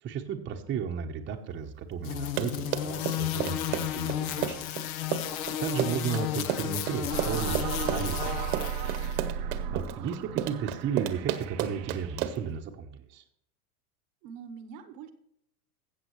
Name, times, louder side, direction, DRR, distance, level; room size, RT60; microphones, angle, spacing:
voice 1, 0.0-4.7 5.6-9.0 9.7-13.2, right 7 dB, 25° right, 3 dB, 0.9 m, -34 dB
sound 1, 2.0-9.2, left 11 dB, 60° left, 1.0 m, -33 dB
Run, 2.1-12.5, right 11 dB, 65° right, 1.2 m, -32 dB
voice 2, 5.2-5.6 9.6-10.1 14.2-15.1, right 6 dB, 45° right, 9 dB, 1.0 m, -46 dB
sound 2, 7.1-12.6, right 8 dB, 85° right, 0.8 m, -35 dB
15.0 x 7.5 x 3.1 m, 0.73 s
supercardioid pair, 125°, 48 cm